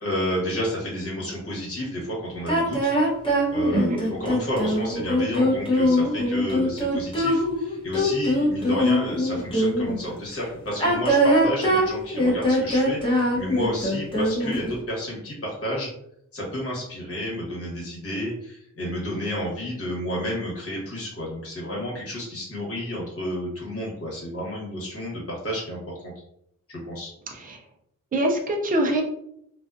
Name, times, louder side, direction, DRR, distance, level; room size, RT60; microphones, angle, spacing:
voice 1, 0.0-2.9 3.5-15.9 16.3-25.9 26.7-27.1, equal, 50° left, -4 dB, 1.2 m, -31 dB
sound 1, 2.5-10.0 10.7-14.7, equal, 15° left, 0.8 m, -22 dB
voice 2, 28.1-29.0, right 1 dB, 30° right, 1 dB, 0.5 m, -23 dB
2.4 x 2.3 x 2.4 m, 0.72 s
wide cardioid pair, 140°, 30 cm